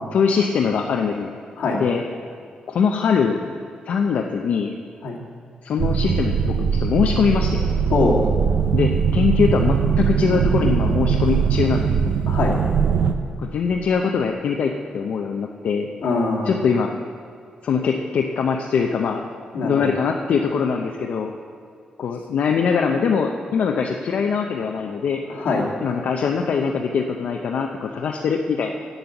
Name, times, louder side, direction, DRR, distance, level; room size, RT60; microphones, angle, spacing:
voice 1, 0.1-1.3 1.7-2.0 2.7-3.4 3.9-4.7 5.6-7.6 8.7-11.9 13.4-15.9 16.4-16.9 17.6-19.2 19.6-21.3 22.0-25.2 25.8-28.7, left 6 dB, 65° left, 2 dB, 0.6 m, -22 dB
sound 1, 5.8-13.1, right 6 dB, 75° right, 0.6 m, -20 dB
voice 2, 7.9-8.3 12.3-12.6 16.0-16.6 19.5-19.9 25.3-25.7, left 3 dB, 90° left, -2 dB, 2.0 m, -22 dB
9.2 x 7.9 x 7.0 m, 2.4 s
wide cardioid pair, 170°, 3 cm